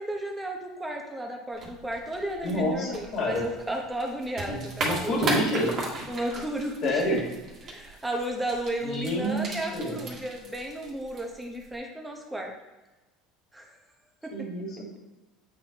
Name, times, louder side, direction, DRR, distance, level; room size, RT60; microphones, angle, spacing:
voice 1, 0.0-5.4 6.1-7.0 7.6-12.5 13.5-13.7 14.2-14.3, right 1 dB, 10° right, 1 dB, 1.0 m, -34 dB
sound 1, 1.5-11.8, right 2 dB, 40° right, 1.6 m, -37 dB
voice 2, 2.4-3.5 4.5-5.8 6.8-7.2 8.8-10.0 14.3-15.0, equal, 50° left, -1 dB, 1.8 m, -28 dB
8.3 x 4.1 x 3.0 m, 1.1 s
supercardioid pair, 120°, 0 cm